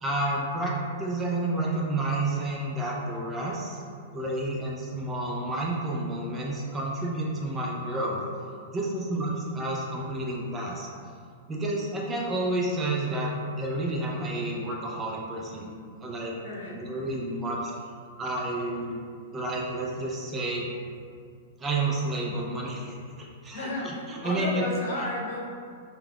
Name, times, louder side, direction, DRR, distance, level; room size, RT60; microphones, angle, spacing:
voice 1, 0.0-3.8 4.1-8.2 8.7-10.9 11.5-15.7 16.0-16.3 16.7-17.8 18.2-19.0 19.3-20.7 21.6-23.0 23.4-24.7, right 2 dB, 20° right, -3 dB, 0.4 m, -30 dB
voice 2, 16.4-16.8 23.5-25.4, left 1 dB, 65° left, -5 dB, 0.8 m, -33 dB
3.2 x 2.2 x 2.3 m, 2.2 s
hypercardioid pair, 110°, 0 cm